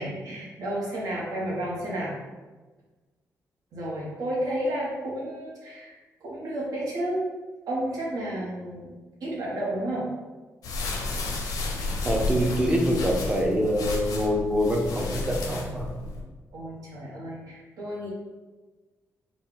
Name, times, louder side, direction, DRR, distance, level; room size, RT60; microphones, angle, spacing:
voice 1, 0.0-2.1 3.7-7.2 7.7-8.9 9.2-10.1 16.5-18.1, right 1 dB, 80° right, -4 dB, 1.2 m, -31 dB
sound 1, 10.6-16.2, left 3 dB, 80° left, 0.7 m, -31 dB
voice 2, 12.0-15.9, equal, 15° right, 0 dB, 0.5 m, -25 dB
4.2 x 2.4 x 3.8 m, 1.3 s
wide cardioid pair, 165°, 6 cm